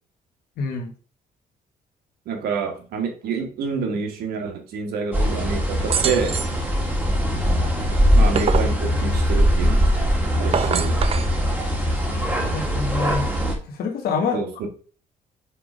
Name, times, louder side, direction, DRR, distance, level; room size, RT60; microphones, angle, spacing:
voice 1, 0.6-0.9 12.5-13.3 13.7-14.4, left 4 dB, 75° left, 2 dB, 1.3 m, -26 dB
voice 2, 2.2-6.4 8.1-9.9 10.4-11.0 14.3-14.7, right 5 dB, 80° right, 4 dB, 1.6 m, -28 dB
sound 1, 5.1-13.5, equal, 10° right, 1.8 m, -21 dB
sound 2, 5.9-6.6 7.9-8.8 10.3-11.3, right 7 dB, 40° right, 0.6 m, -25 dB
5.8 x 3.4 x 4.9 m, 0.38 s
cardioid pair, 105°, 16 cm